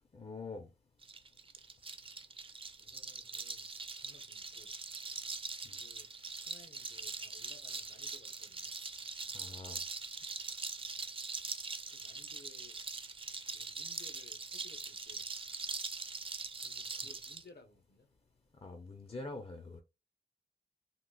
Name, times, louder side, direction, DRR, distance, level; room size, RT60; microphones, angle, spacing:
voice 1, 0.1-0.7 9.3-9.8 18.6-19.8, left 3 dB, 30° left, 0.4 m, -45 dB
sound 1, 1.0-17.4, right 4 dB, 30° right, 0.4 m, -42 dB
voice 2, 2.8-3.7 4.0-4.7 5.7-6.1 6.4-8.7 11.9-12.8 13.5-15.3 16.6-18.1, left 3 dB, 65° left, 0.8 m, -60 dB
3.7 x 2.4 x 2.2 m
wide cardioid pair, 80°, 19 cm